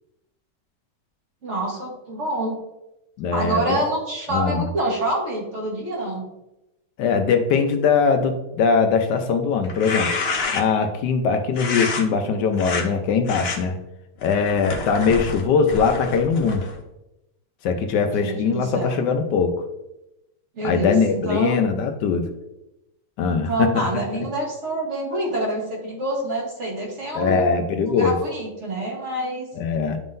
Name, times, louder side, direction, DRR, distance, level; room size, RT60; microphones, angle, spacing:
voice 1, 1.4-2.6 3.3-6.3 18.2-19.0 20.6-21.5 23.3-27.6 28.0-29.5, right 1 dB, 45° right, -2 dB, 1.6 m, -27 dB
voice 2, 3.2-3.8 4.3-4.7 7.0-10.1 10.5-13.8 14.2-16.6 17.6-19.5 20.6-22.3 23.2-23.9 27.1-28.2 29.6-30.0, left 5 dB, 80° left, 6 dB, 1.3 m, -21 dB
sound 1, 9.6-10.9 11.6-12.0 12.5-12.8 13.3-13.6 14.2-16.8, left 4 dB, 55° left, 0.7 m, -28 dB
10.5 x 3.7 x 2.6 m, 0.92 s
omnidirectional pair, 1.8 m